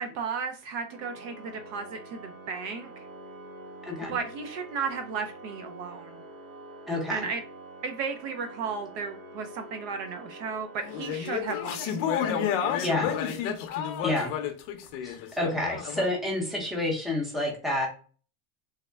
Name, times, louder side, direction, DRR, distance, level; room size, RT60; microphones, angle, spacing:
voice 1, 0.0-2.9 4.1-6.2 7.1-7.4 7.8-12.0, right 5 dB, 50° right, 6 dB, 0.5 m, -34 dB
Organ, 0.9-11.8, right 1 dB, 70° right, 1.0 m, -46 dB
voice 2, 6.9-7.3 12.8-13.1 14.0-14.3 15.0-17.9, left 1 dB, ahead, -2 dB, 0.7 m, -29 dB
sound 1, 10.8-16.1, left 8 dB, 55° left, 0.6 m, -30 dB
3.5 x 2.1 x 3.2 m, 0.40 s
supercardioid pair, 145°, 43 cm